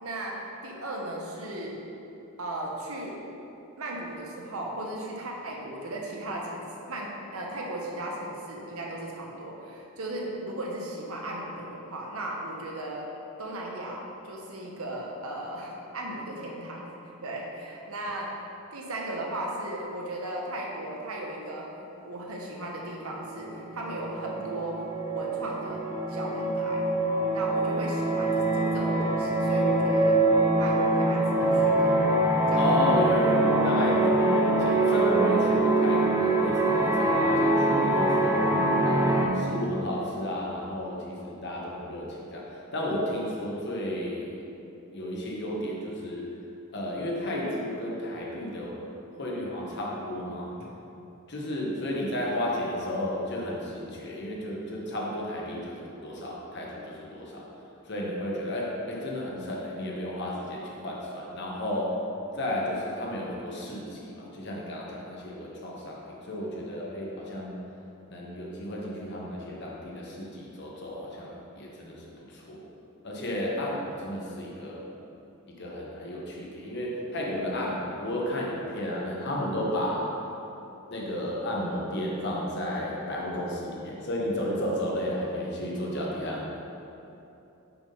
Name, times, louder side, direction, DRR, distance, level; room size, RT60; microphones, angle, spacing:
voice 1, 0.0-1.8 2.4-3.2 3.8-13.1 13.4-18.3 18.7-21.8 22.0-25.8 26.1-26.8 27.3-30.2 30.5-32.0 32.5-32.7, right 1 dB, 75° right, -1 dB, 0.9 m, -36 dB
sound 1, 23.4-23.5 23.8-39.3, right 2 dB, 15° right, 0.5 m, -24 dB
voice 2, 32.6-38.5 38.8-44.4 44.9-46.3 46.7-48.9 49.2-50.5 51.3-57.5 57.9-62.0 62.3-67.6 68.1-72.6 73.0-74.9 75.5-80.1 80.9-86.6, left 1 dB, 50° left, -3 dB, 1.1 m, -32 dB
6.0 x 3.6 x 5.3 m, 2.9 s
head